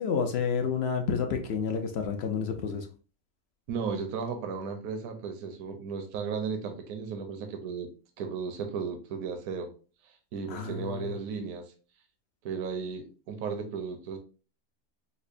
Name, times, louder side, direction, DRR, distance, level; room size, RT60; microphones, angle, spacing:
voice 1, 0.0-2.9 10.5-11.2, left 6 dB, 65° left, 5 dB, 0.6 m, -30 dB
voice 2, 3.7-7.9 8.2-9.7 10.0-11.7 12.4-14.2, right 5 dB, 75° right, 5 dB, 1.0 m, -35 dB
5.4 x 2.0 x 2.4 m, 0.36 s
omnidirectional pair, 1.5 m